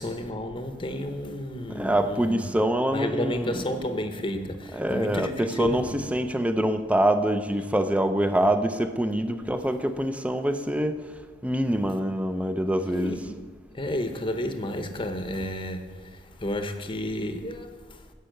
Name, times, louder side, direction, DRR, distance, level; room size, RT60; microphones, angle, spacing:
voice 1, 0.0-2.5 2.9-6.0 12.9-13.4 13.7-18.0, left 1 dB, 30° left, 0.8 m, -32 dB
voice 2, 1.7-3.7 4.7-11.0 11.4-13.2, right 1 dB, 5° right, 0.5 m, -25 dB
9.9 x 5.6 x 7.7 m
head